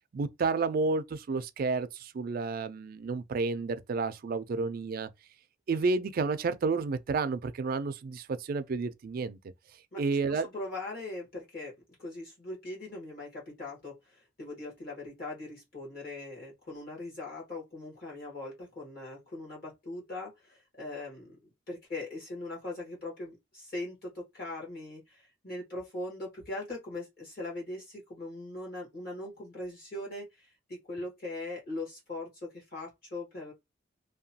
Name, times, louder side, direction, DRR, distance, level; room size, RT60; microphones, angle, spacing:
voice 1, 0.1-5.1 5.7-9.4 10.0-10.5, right 4 dB, 45° right, 0.3 m, -31 dB
voice 2, 10.3-11.7 12.0-21.4 21.7-33.5, left 2 dB, 50° left, 1.3 m, -40 dB
2.9 x 2.2 x 2.7 m
head